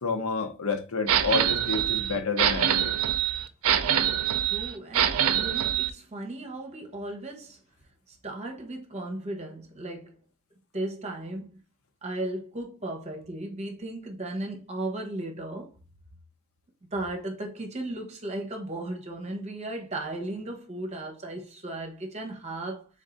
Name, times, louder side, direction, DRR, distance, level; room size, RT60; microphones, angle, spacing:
voice 1, 0.0-2.9, left 4 dB, 80° left, 0.9 m, -29 dB
sound 1, 1.1-5.9, right 9 dB, 80° right, 0.5 m, -25 dB
voice 2, 4.4-7.6 8.1-10.2 10.7-11.6 12.0-15.7 16.9-22.9, right 1 dB, 30° right, 1.0 m, -36 dB
3.8 x 3.7 x 3.9 m
head